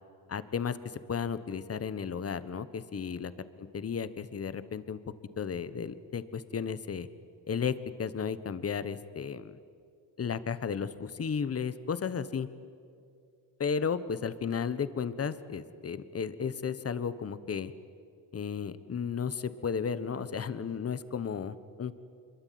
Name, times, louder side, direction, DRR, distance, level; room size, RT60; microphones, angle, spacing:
voice 1, 0.3-3.3 3.7-5.0 5.4-7.1 7.5-9.6 10.2-12.5 13.6-17.7 18.3-22.0, left 6 dB, 35° left, 14 dB, 1.3 m, -34 dB
26.0 x 23.0 x 9.4 m, 2.4 s
cardioid pair, 110°, 42 cm